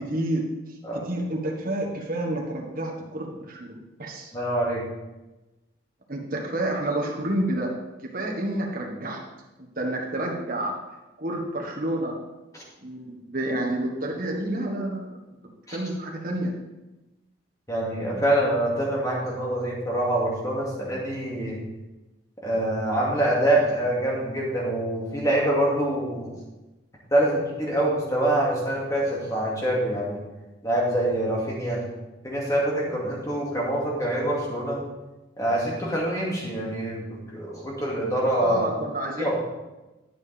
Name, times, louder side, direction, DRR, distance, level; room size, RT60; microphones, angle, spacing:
voice 1, 0.1-0.5 0.9-4.3 6.1-7.7 8.0-9.2 9.8-10.7 11.2-12.2 12.8-15.1 15.7-16.5 38.4-39.3, right 1 dB, 45° right, 0 dB, 1.5 m, -29 dB
voice 2, 4.3-4.8 12.5-12.6 15.7-15.8 17.7-21.6 22.4-26.3 27.1-30.2 30.6-31.8 32.2-34.8 35.4-38.6 39.2-39.3, right 1 dB, 15° left, -4 dB, 2.2 m, -25 dB
11.0 x 7.0 x 3.5 m, 1.1 s
head